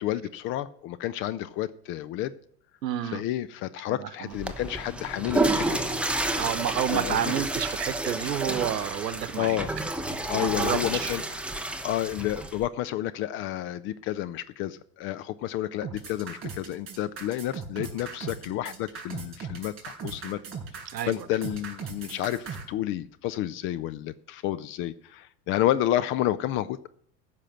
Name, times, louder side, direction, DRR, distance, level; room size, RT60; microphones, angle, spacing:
voice 1, 0.0-2.3 3.1-5.9 6.9-7.2 9.4-9.7 10.3-11.4 11.8-20.4 21.0-26.9, left 13 dB, 30° left, 0.4 m, -30 dB
voice 2, 2.8-3.2 3.9-4.4 6.4-9.6 10.3-11.2 20.9-21.3, right 10 dB, 85° right, 0.9 m, -30 dB
Water / Toilet flush, 4.3-12.7, right 2 dB, ahead, 0.9 m, -30 dB
sound 1, 15.8-22.6, right 6 dB, 25° right, 4.3 m, -38 dB
14.5 x 5.9 x 7.7 m
hypercardioid pair, 90°, 49 cm